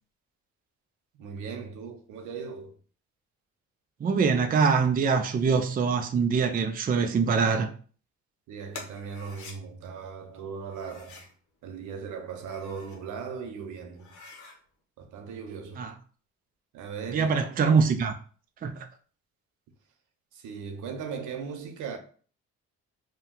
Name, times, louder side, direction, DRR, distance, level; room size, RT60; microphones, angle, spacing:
voice 1, 1.1-2.7 8.5-11.2 11.6-14.2 15.0-15.9 16.7-17.3 20.3-22.0, right 6 dB, 80° right, 0.7 m, -38 dB
voice 2, 4.0-7.7 15.8-15.9 17.1-18.1 18.6-18.8, right 5 dB, 30° right, 0.4 m, -24 dB
sound 1, 8.7-9.6 10.7-11.3 12.2-13.0 13.4-13.5 13.9-14.6, left 3 dB, 70° left, 0.9 m, -46 dB
2.6 x 2.2 x 3.6 m
cardioid pair, 90°, 30 cm